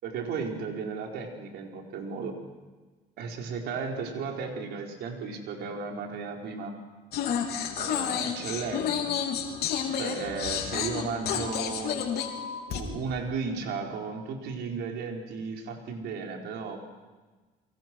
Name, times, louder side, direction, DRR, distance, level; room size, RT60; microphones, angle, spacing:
voice 1, 0.0-2.3 3.2-6.8 7.8-9.1 10.0-12.0 12.7-16.8, right 5 dB, 75° right, 2 dB, 4.7 m, -34 dB
sound 1, 7.1-12.8, left 8 dB, 70° left, 3.5 m, -30 dB
30.0 x 24.0 x 6.3 m, 1.3 s
cardioid pair, 110°, 17 cm